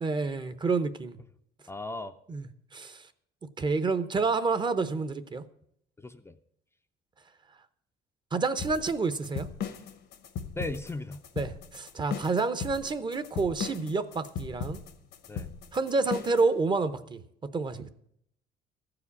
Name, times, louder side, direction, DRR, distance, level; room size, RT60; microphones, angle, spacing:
voice 1, 0.0-1.2 2.3-3.0 3.6-5.4 8.3-9.5 11.4-14.8 15.7-17.9, right 4 dB, 25° right, 0.7 m, -29 dB
voice 2, 1.7-2.2 6.0-6.4 10.5-11.2 15.3-15.5, left 2 dB, 15° left, 0.5 m, -37 dB
sound 1, 8.6-16.5, left 7 dB, 75° left, 1.1 m, -37 dB
14.0 x 4.9 x 8.3 m
cardioid pair, 110°, 17 cm